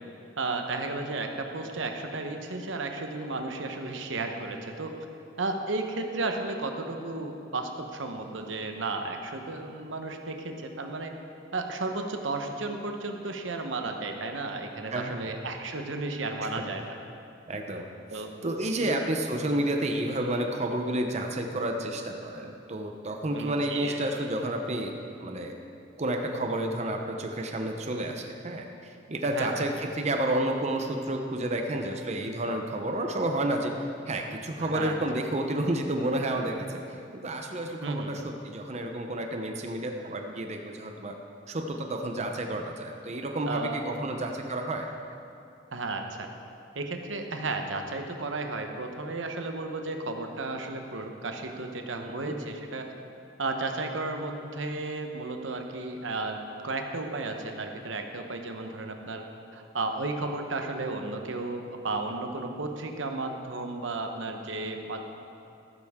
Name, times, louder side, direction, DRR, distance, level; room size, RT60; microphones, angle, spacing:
voice 1, 0.4-4.9 5.4-11.1 11.5-16.9 18.1-18.3 18.8-19.0 23.3-24.0 29.2-29.6 34.6-35.2 37.8-38.1 43.5-43.8 45.7-46.3 46.7-52.8 53.4-56.4 56.6-59.2 59.5-65.0, right 3 dB, 85° right, 4 dB, 1.0 m, -33 dB
voice 2, 14.9-15.3 16.5-16.6 17.5-24.9 25.2-25.5 26.0-36.8 37.1-41.2 41.5-44.9 52.0-52.4, right 1 dB, 35° right, 3 dB, 0.8 m, -30 dB
14.0 x 12.0 x 3.7 m, 2.6 s
head